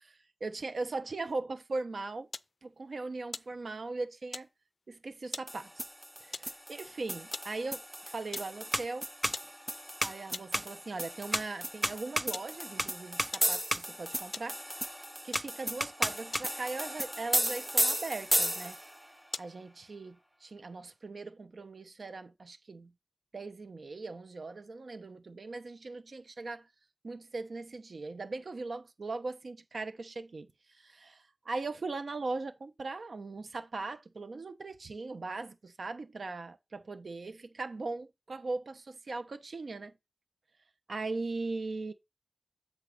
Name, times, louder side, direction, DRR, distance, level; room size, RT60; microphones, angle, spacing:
voice 1, 0.4-2.3 2.6-4.5 4.9-5.9 6.2-9.1 10.0-14.9 15.2-18.8 19.4-22.9 23.3-26.7 27.0-30.5 30.8-39.9 40.9-41.9, right 3 dB, 85° right, 0.8 m, -39 dB
sound 1, 2.3-2.6 3.2-4.0 4.3-4.6 5.3-5.6 6.3-6.6 7.1-7.6 8.3-8.6 9.3-9.6 9.9-10.0 10.3-10.6 11.3-11.6 12.3-12.6 13.3-13.6 14.3-14.6 15.3-15.6 16.3-16.8 17.3-17.6 18.3-18.6 19.3-19.6, left 3 dB, 75° left, 0.4 m, -41 dB
sound 2, 5.5-19.0, equal, 5° right, 0.5 m, -34 dB
8.2 x 3.8 x 5.0 m
wide cardioid pair, 70°, 0 cm